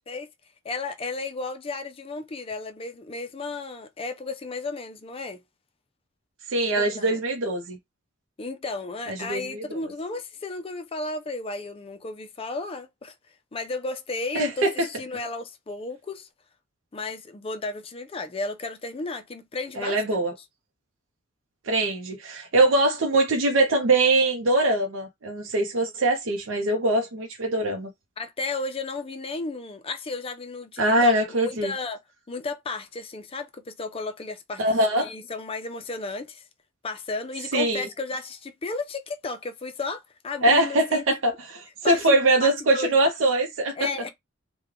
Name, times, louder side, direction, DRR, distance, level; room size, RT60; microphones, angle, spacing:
voice 1, 0.6-5.4 6.7-7.2 8.4-13.1 13.5-16.3 16.9-20.2 28.2-32.0 32.3-34.6 35.0-36.4 36.8-41.0 41.8-42.9 43.8-44.1, left 3 dB, 30° left, 0.4 m, -33 dB
voice 2, 6.5-7.8 9.1-9.8 14.3-14.9 19.8-20.3 21.6-27.9 30.8-31.7 34.6-35.1 37.5-37.9 40.4-41.3 41.8-43.9, right 2 dB, 75° right, 0.6 m, -22 dB
3.1 x 2.2 x 3.6 m
head